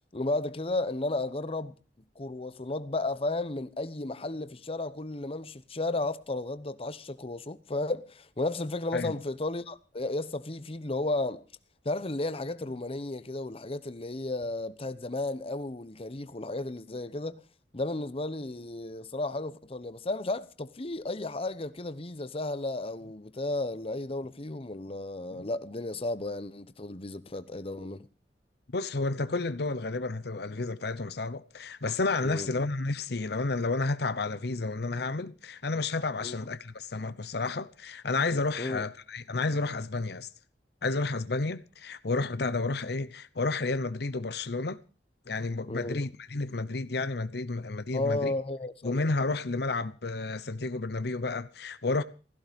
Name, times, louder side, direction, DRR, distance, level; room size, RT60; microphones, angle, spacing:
voice 1, 0.1-1.7 2.2-11.4 11.8-17.4 17.7-28.1 32.2-32.5 36.2-36.4 38.6-38.8 45.7-46.0 47.9-48.9, left 2 dB, 35° left, 1.0 m, -33 dB
voice 2, 28.7-40.3 40.8-44.8 45.3-48.3 48.8-52.0, left 3 dB, 65° left, 0.9 m, -31 dB
16.0 x 15.0 x 5.2 m
head